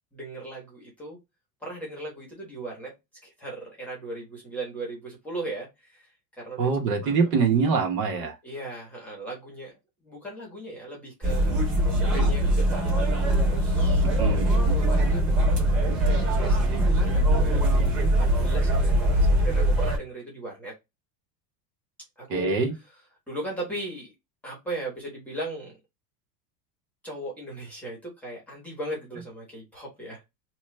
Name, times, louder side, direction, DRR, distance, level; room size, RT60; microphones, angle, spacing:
voice 1, 0.1-1.2 1.6-2.9 3.2-6.7 7.0-7.3 8.4-11.6 12.1-13.2 13.5-15.7 16.4-20.7 22.2-22.5 23.3-24.1 24.4-25.8 27.0-30.2, right 2 dB, 5° left, 0.8 m, -38 dB
voice 2, 6.6-8.4 14.2-14.4 22.3-22.7, right 5 dB, 70° right, 1.2 m, -24 dB
sound 1, 11.2-20.0, right 1 dB, 30° right, 1.4 m, -22 dB
3.0 x 2.3 x 3.1 m
supercardioid pair, 165°, 49 cm